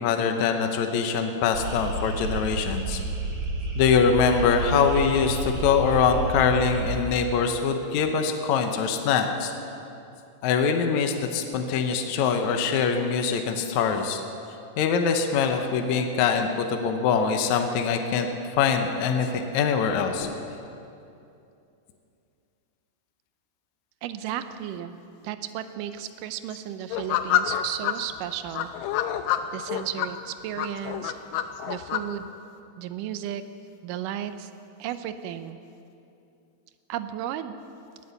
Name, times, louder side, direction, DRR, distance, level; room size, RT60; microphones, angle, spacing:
voice 1, 0.0-3.0 3.8-9.5 10.4-14.2 14.8-18.3 18.6-20.3, left 6 dB, 70° left, 5 dB, 2.0 m, -23 dB
sound 1, 1.5-7.0, right 2 dB, 55° right, 2.9 m, -30 dB
voice 2, 24.0-24.9 25.2-28.7 29.5-31.1 31.7-32.3 32.8-33.4 33.8-34.5 34.8-35.6 36.9-37.6, right 10 dB, 80° right, 11 dB, 2.2 m, -34 dB
sound 2, 26.9-27.9 28.5-30.1 30.6-32.0, left 11 dB, 85° left, 2.4 m, -26 dB
17.5 x 9.5 x 7.0 m, 2.6 s
omnidirectional pair, 3.9 m